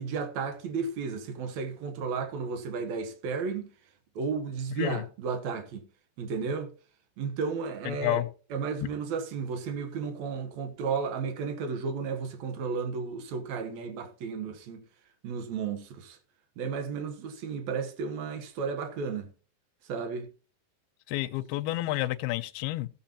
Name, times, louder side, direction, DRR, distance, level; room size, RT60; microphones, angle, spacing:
voice 1, 0.0-3.7 4.1-5.9 6.2-6.7 7.2-8.2 8.5-14.8 15.2-16.2 16.6-19.3 19.9-20.3, right 5 dB, 80° right, 1.6 m, -33 dB
voice 2, 7.9-8.3 21.1-22.9, left 16 dB, 80° left, 2.3 m, -30 dB
16.0 x 7.3 x 2.8 m
omnidirectional pair, 4.9 m